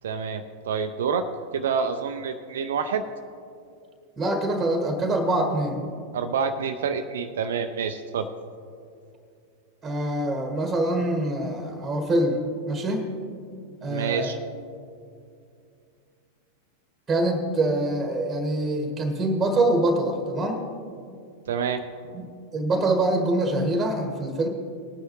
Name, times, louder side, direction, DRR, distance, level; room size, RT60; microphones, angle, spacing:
voice 1, 0.0-1.3 1.5-3.0 6.1-8.3 13.9-14.4 21.5-21.8, right 6 dB, 60° right, 7 dB, 0.5 m, -27 dB
voice 2, 4.2-5.8 9.8-13.1 13.8-14.3 17.1-20.6 22.1-24.5, right 1 dB, 15° right, 4 dB, 1.6 m, -25 dB
19.5 x 9.5 x 3.1 m, 2.4 s
figure-of-eight pair, 90°, 0 cm